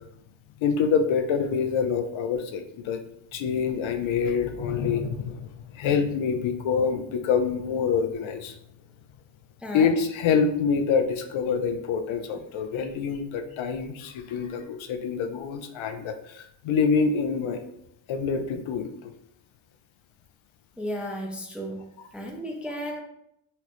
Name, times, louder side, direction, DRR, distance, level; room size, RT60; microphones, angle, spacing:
voice 1, 0.6-3.0 3.3-8.5 9.7-17.6 18.1-19.1, left 6 dB, 80° left, 7 dB, 0.5 m, -26 dB
voice 2, 9.6-10.0 20.8-21.8 22.1-23.0, equal, 5° right, 1 dB, 0.3 m, -33 dB
4.2 x 2.0 x 2.9 m, 0.75 s
wide cardioid pair, 115°, 46 cm